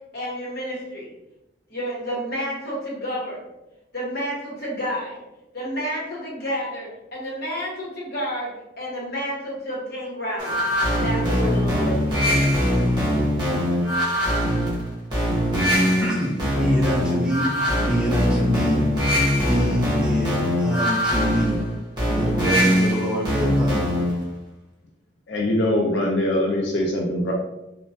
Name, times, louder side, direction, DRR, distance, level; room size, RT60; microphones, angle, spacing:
voice 1, 0.1-1.1 1.7-3.4 3.9-5.2 5.5-10.6 10.9-12.5, equal, 55° left, -5 dB, 1.0 m, -30 dB
sound 1, 10.4-24.2, equal, 25° right, 1.0 m, -22 dB
voice 2, 15.6-17.5 17.8-18.8 19.3-21.6 22.1-23.9, equal, 5° right, -5 dB, 0.4 m, -27 dB
voice 3, 25.3-27.3, left 1 dB, 70° left, -1 dB, 0.4 m, -22 dB
3.0 x 2.1 x 2.6 m, 0.95 s
head